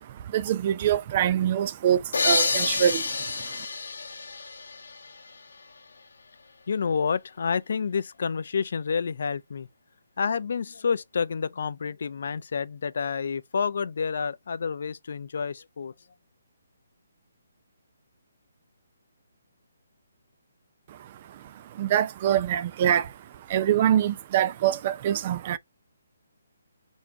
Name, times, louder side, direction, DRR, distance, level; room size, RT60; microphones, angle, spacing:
voice 1, 0.0-3.7 20.9-25.6, right 10 dB, 30° right, 0.4 m, -25 dB
sound 1, 2.1-5.7, left 4 dB, 85° left, 1.1 m, -29 dB
voice 2, 6.7-9.7 10.2-16.1, left 6 dB, 60° left, 0.5 m, -29 dB
4.5 x 4.2 x 2.6 m
hypercardioid pair, 160°, 0 cm